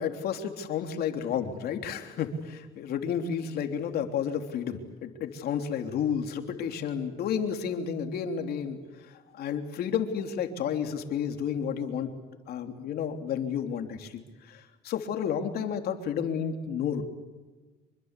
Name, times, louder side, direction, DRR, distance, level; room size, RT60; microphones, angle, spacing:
voice 1, 0.0-8.8 9.3-12.1 12.5-14.2 14.5-17.0, left 7 dB, 65° left, 5 dB, 3.3 m, -31 dB
26.5 x 24.0 x 8.3 m, 1.3 s
cardioid pair, 110°, 17 cm